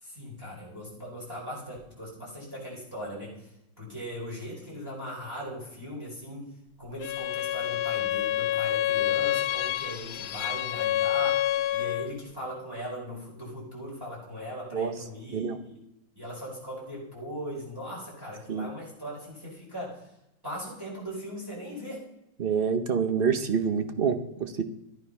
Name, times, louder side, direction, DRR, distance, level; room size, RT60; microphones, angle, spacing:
voice 1, 0.0-3.5 3.8-6.5 6.8-15.8 16.1-20.1 20.4-22.0, equal, 10° right, -6 dB, 4.7 m, -39 dB
Bowed string instrument, 7.0-12.2, left 13 dB, 70° left, 1.1 m, -28 dB
voice 2, 22.4-24.6, right 6 dB, 50° right, 9 dB, 0.6 m, -27 dB
13.5 x 9.4 x 5.6 m, 0.84 s
omnidirectional pair, 2.0 m